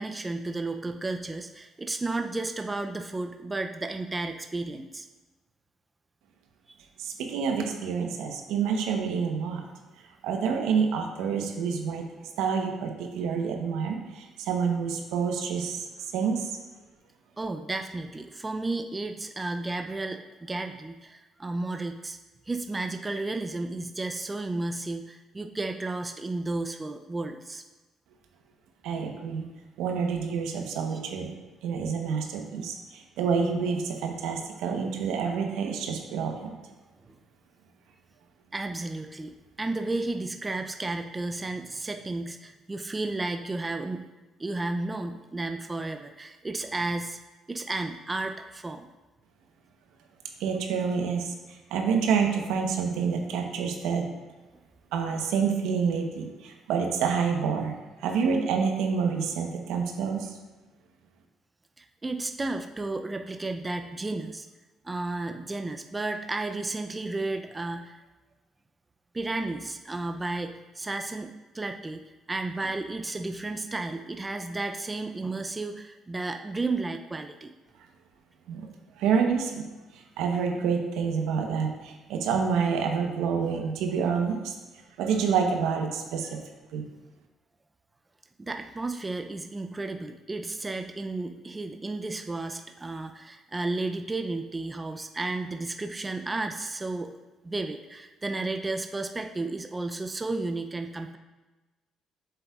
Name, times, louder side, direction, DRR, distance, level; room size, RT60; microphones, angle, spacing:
voice 1, 0.0-5.1 17.4-22.2 22.5-27.6 38.5-44.0 44.4-47.2 47.5-48.9 61.8-64.5 64.8-68.0 69.1-72.0 72.3-77.5 88.4-97.1 97.4-101.2, right 2 dB, 20° right, 5 dB, 0.4 m, -33 dB
voice 2, 7.0-9.7 10.2-12.0 12.4-15.9 16.1-16.5 28.8-29.5 29.8-31.3 31.6-36.5 50.4-54.0 54.9-57.7 58.0-60.3 78.5-78.7 79.0-79.6 80.2-84.5 85.0-86.4 86.7-86.9, right 6 dB, 90° right, 3 dB, 0.9 m, -28 dB
7.6 x 6.9 x 2.4 m, 1.2 s
cardioid pair, 100°, 0 cm